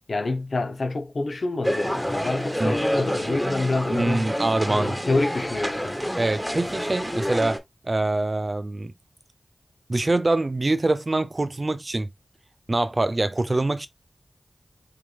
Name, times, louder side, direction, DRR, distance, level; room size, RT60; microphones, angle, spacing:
voice 1, 0.1-4.3 4.6-6.0, left 2 dB, 70° left, 0.9 m, -27 dB
sound 1, 1.6-7.6, equal, ahead, 1.4 m, -28 dB
voice 2, 3.9-5.0 6.2-8.9 9.9-12.1 12.7-13.9, right 2 dB, 45° right, 0.5 m, -24 dB
4.2 x 3.1 x 3.4 m
cardioid pair, 45°, 0 cm